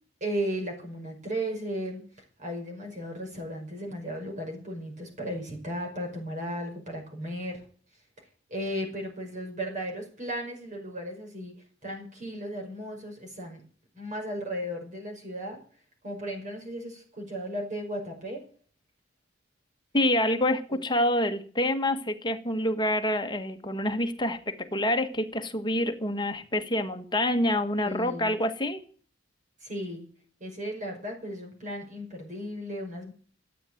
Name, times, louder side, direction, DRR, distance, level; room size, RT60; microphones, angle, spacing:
voice 1, 0.2-2.0 2.4-7.6 8.5-11.5 11.8-13.6 13.9-15.6 16.0-18.4 20.7-20.8 27.8-28.4 29.6-30.1 30.4-33.1, equal, 40° right, 1 dB, 5.6 m, -35 dB
voice 2, 19.9-28.8, left 1 dB, 25° left, 6 dB, 1.5 m, -27 dB
13.0 x 9.1 x 9.1 m, 0.43 s
head